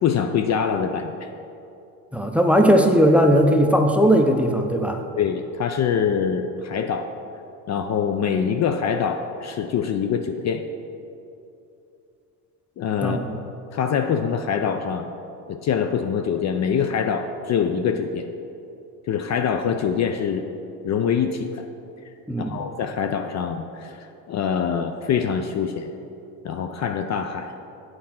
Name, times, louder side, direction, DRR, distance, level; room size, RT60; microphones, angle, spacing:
voice 1, 0.0-1.3 5.2-7.1 7.7-10.7 12.8-13.2 13.7-15.1 15.5-18.3 19.1-20.5 20.8-21.7 22.4-25.9 26.4-27.5, left 7 dB, 40° left, 7 dB, 0.5 m, -24 dB
voice 2, 2.1-5.0 13.0-13.3 22.3-22.6, equal, 5° right, 4 dB, 0.6 m, -18 dB
8.4 x 4.7 x 5.8 m, 2.7 s
hypercardioid pair, 70°, 45 cm